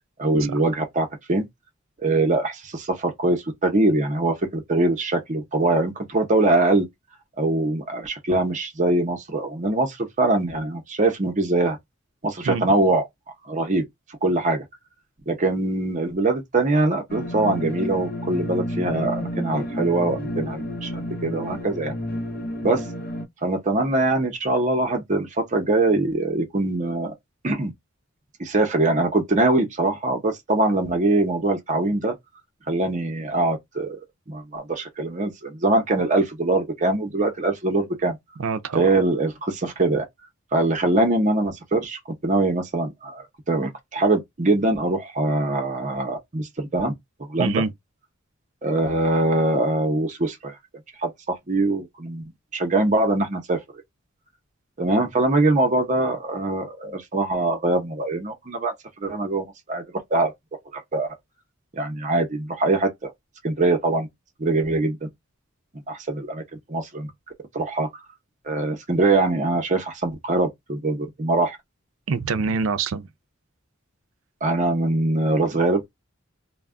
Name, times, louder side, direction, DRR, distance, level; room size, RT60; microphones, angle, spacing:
voice 1, 0.2-1.5 2.0-6.9 7.4-11.8 12.2-13.0 13.5-13.8 14.2-14.6 15.3-21.9 22.6-22.8 23.4-27.1 27.4-27.7 28.4-32.2 32.7-34.0 34.3-38.2 38.8-40.1 40.5-46.9 47.2-47.6 48.6-50.6 51.0-53.6 54.8-58.7 59.0-59.8 60.1-60.3 60.7-61.1 61.7-63.1 63.4-64.1 64.4-65.1 65.7-66.4 66.7-67.1 67.5-67.9 68.4-71.6 74.4-75.9, right 2 dB, 35° right, 0.7 m, -23 dB
sound 1, 17.1-23.3, left 1 dB, 45° left, 0.7 m, -30 dB
voice 2, 38.4-38.8 47.4-47.7 72.1-73.1, right 5 dB, 70° right, 0.4 m, -25 dB
2.2 x 2.1 x 3.5 m
head